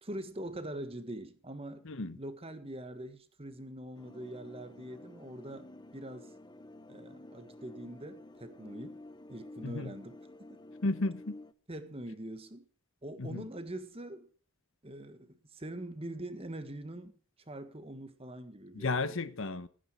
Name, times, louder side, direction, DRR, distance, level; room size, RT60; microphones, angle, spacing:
voice 1, 0.0-6.3 6.9-9.0 9.3-10.2 10.5-10.6 11.7-12.7 13.0-14.3 14.8-17.1 17.4-19.0, right 1 dB, 25° right, 1.5 m, -43 dB
voice 2, 1.8-2.2 9.6-9.9 10.8-11.4 13.2-13.5 18.7-19.7, left 2 dB, 60° left, 1.0 m, -33 dB
sound 1, 3.9-11.5, left 2 dB, 20° left, 0.9 m, -51 dB
16.0 x 9.5 x 4.8 m
head